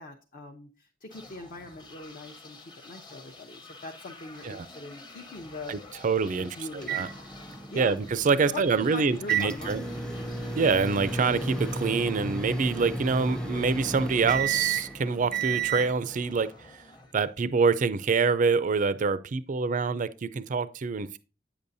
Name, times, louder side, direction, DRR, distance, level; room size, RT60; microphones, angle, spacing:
voice 1, 0.0-6.0 6.4-7.0 7.7-8.0 8.4-9.9, left 2 dB, 45° left, 0.7 m, -42 dB
sound 1, 1.1-17.8, left 2 dB, 25° left, 0.9 m, -50 dB
voice 2, 5.7-6.5 6.9-7.1 7.8-9.8 10.6-16.5 17.1-21.2, right 4 dB, 40° right, 0.4 m, -26 dB
sound 2, 6.8-15.9, right 5 dB, 5° left, 0.6 m, -32 dB
8.6 x 7.0 x 2.6 m
head